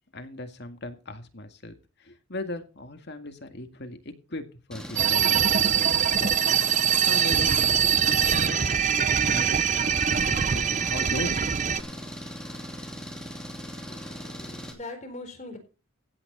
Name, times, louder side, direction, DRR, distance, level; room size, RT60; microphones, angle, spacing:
voice 1, 0.1-1.7 2.0-7.6 8.0-11.5, left 2 dB, 50° left, 7 dB, 2.0 m, -38 dB
Engine, 4.7-14.7, equal, 5° left, 2.7 m, -39 dB
sound 1, 5.0-11.8, right 8 dB, 35° right, 0.7 m, -23 dB
voice 2, 13.9-15.6, left 2 dB, 35° left, 6 dB, 4.1 m, -41 dB
16.0 x 8.9 x 4.1 m, 0.32 s
head